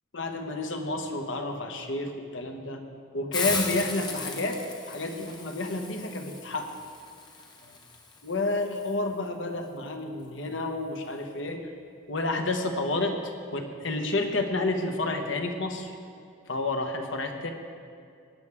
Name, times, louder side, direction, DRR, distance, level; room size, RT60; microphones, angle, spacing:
voice 1, 0.1-2.8 3.1-6.8 8.2-11.7 12.1-15.9 16.5-17.5, left 2 dB, 65° left, 4 dB, 1.2 m, -30 dB
Hiss, 3.3-8.9, left 4 dB, 20° left, 1.1 m, -37 dB
19.0 x 9.7 x 3.6 m, 2.3 s
head